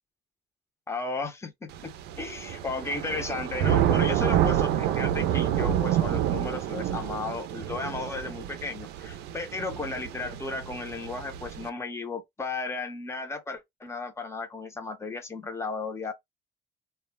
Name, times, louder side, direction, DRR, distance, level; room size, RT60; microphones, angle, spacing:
voice 1, 0.9-16.1, left 3 dB, 15° left, 0.6 m, -34 dB
Thunder / Rain, 1.7-11.7, right 11 dB, 80° right, 0.4 m, -28 dB
2.2 x 2.0 x 3.1 m
cardioid pair, 110°, 17 cm